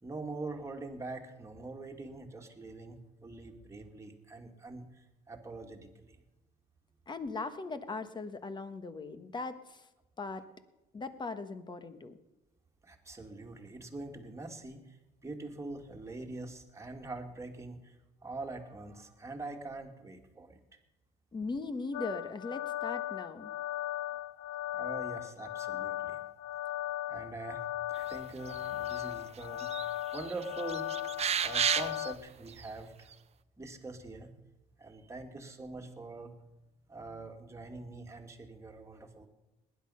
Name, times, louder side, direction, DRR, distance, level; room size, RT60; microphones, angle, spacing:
voice 1, 0.0-6.2 12.8-15.0 15.2-17.9 18.2-20.6 24.7-26.2 27.1-29.8 30.1-30.9 31.4-33.1 33.6-34.3 34.8-36.3 36.9-39.3, right 3 dB, 15° right, 3 dB, 2.1 m, -44 dB
voice 2, 7.1-9.9 10.2-10.4 10.9-12.2 21.3-23.5, left 3 dB, 25° left, 11 dB, 1.3 m, -39 dB
sound 1, 21.9-32.1, left 14 dB, 80° left, 0.6 m, -37 dB
sound 2, 28.5-29.1 29.4-29.9 30.1-32.1 32.6-32.7, right 8 dB, 40° right, 0.8 m, -32 dB
18.5 x 10.5 x 5.6 m, 1.0 s
cardioid pair, 110°, 17 cm